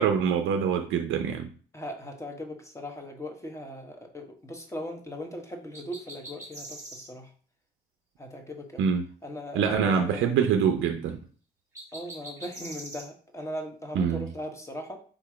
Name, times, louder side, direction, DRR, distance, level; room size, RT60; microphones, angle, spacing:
voice 1, 0.0-1.5 8.8-9.0 9.5-11.2 14.0-14.3, right 7 dB, 80° right, 0.5 m, -25 dB
voice 2, 1.7-7.3 8.2-8.9 9.2-10.4 11.9-15.0, left 1 dB, 15° left, 1.0 m, -39 dB
sound 1, 5.7-7.1 11.7-13.1, right 1 dB, 15° right, 1.5 m, -43 dB
3.7 x 2.9 x 4.8 m
cardioid pair, 90°, 20 cm